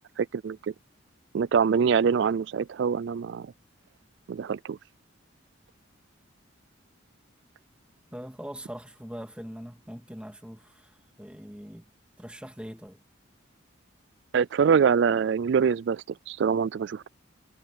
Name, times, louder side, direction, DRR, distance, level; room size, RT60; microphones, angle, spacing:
voice 1, 0.2-0.6 1.3-3.5 4.3-4.8 14.3-17.1, right 6 dB, 60° right, 0.3 m, -24 dB
voice 2, 8.1-11.9 12.2-13.0, equal, 5° right, 2.0 m, -42 dB
head